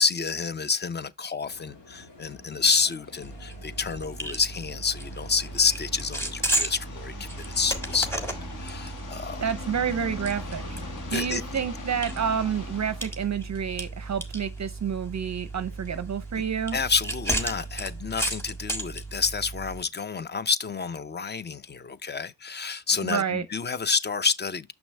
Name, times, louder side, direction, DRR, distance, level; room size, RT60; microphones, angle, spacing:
voice 1, 0.0-8.2 8.6-9.4 11.1-11.4 16.7-24.7, left 5 dB, 25° left, 0.6 m, -28 dB
sound 1, 1.4-18.3, left 2 dB, 90° left, 2.1 m, -52 dB
sound 2, 3.2-19.8, right 1 dB, 5° left, 1.7 m, -34 dB
sound 3, 5.1-13.2, left 3 dB, 45° left, 1.3 m, -41 dB
voice 2, 9.4-10.6 11.1-16.8 23.0-23.4, right 7 dB, 40° right, 0.6 m, -29 dB
6.3 x 6.1 x 3.2 m
cardioid pair, 70°, 41 cm